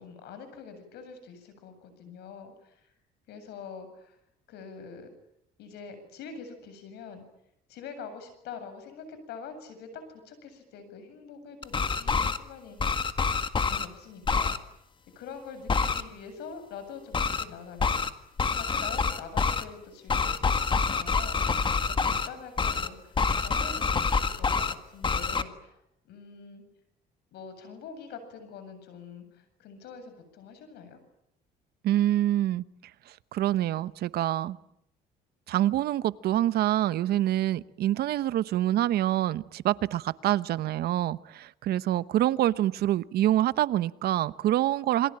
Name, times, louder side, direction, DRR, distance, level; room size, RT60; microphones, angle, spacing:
voice 1, 0.0-2.9 3.3-4.2 4.5-5.1 5.6-7.2 7.7-13.0 13.6-14.6 15.1-18.0 18.5-26.6 27.3-31.0, left 5 dB, 80° left, 10 dB, 7.8 m, -45 dB
sound 1, 11.6-12.4 12.8-13.9 14.3-14.6 15.7-16.0 17.1-17.4 17.8-18.1 18.4-19.6 20.1-22.3 22.6-22.9 23.2-24.7 25.0-25.4, left 5 dB, 30° left, 1.8 m, -26 dB
voice 2, 31.8-32.6 33.3-34.6 35.5-45.1, right 13 dB, 70° right, 16 dB, 1.0 m, -26 dB
28.0 x 23.5 x 8.9 m, 0.77 s
cardioid pair, 110°, 17 cm